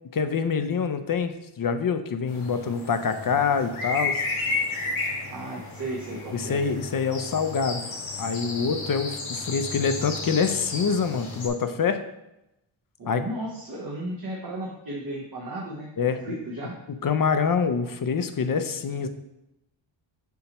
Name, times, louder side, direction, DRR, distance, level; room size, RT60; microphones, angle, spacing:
voice 1, 0.1-4.2 6.3-7.9 8.2-12.0 13.1-13.2 16.0-16.3 17.0-19.1, left 6 dB, 45° left, 9 dB, 0.5 m, -25 dB
sound 1, 2.3-11.5, left 3 dB, 90° left, 1.7 m, -33 dB
voice 2, 5.3-6.6 13.0-15.9 16.2-16.8, right 1 dB, 45° right, -3 dB, 1.0 m, -34 dB
7.0 x 5.5 x 2.9 m, 0.87 s
wide cardioid pair, 165°, 48 cm